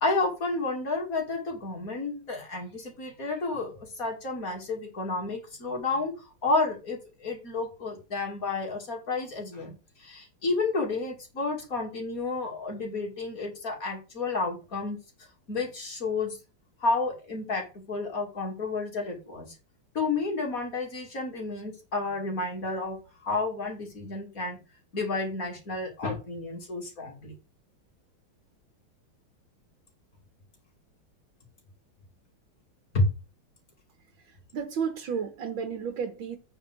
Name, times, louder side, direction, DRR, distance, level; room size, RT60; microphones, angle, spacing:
voice 1, 0.0-15.0 15.5-16.4 16.8-19.5 19.9-24.6 24.9-27.3 32.9-33.1, left 3 dB, 40° left, 2.9 m, -31 dB
voice 2, 34.2-36.4, right 6 dB, 70° right, 2.0 m, -32 dB
8.7 x 4.6 x 7.5 m
omnidirectional pair, 2.3 m